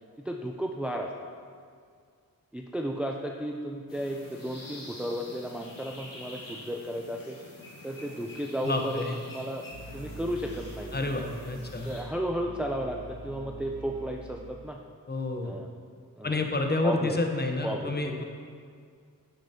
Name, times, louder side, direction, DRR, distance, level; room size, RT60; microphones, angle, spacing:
voice 1, 0.2-1.1 2.5-7.4 7.8-9.0 9.3-9.6 9.9-11.0 11.8-14.8 15.4-15.7 16.2-16.4 16.8-17.2 17.6-18.0, equal, 5° right, 1 dB, 0.4 m, -33 dB
sound 1, 3.9-12.0, left 1 dB, 65° left, 1.9 m, -47 dB
voice 2, 8.6-9.1 10.9-11.9 15.1-15.6 16.2-18.2, left 2 dB, 25° left, 4 dB, 0.8 m, -29 dB
sound 2, 9.7-14.7, right 2 dB, 55° right, 1.2 m, -44 dB
9.3 x 6.8 x 2.8 m, 2.1 s
cardioid pair, 65°, 36 cm